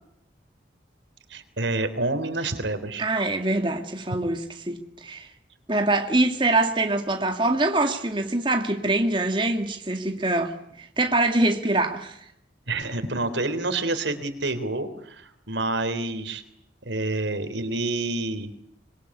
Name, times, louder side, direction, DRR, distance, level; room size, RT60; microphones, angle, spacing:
voice 1, 1.3-3.0 12.7-16.4 16.9-18.5, right 2 dB, 85° right, 3.6 m, -28 dB
voice 2, 3.0-5.3 5.7-12.2, right 2 dB, 25° right, 2.2 m, -24 dB
25.5 x 22.5 x 9.8 m
head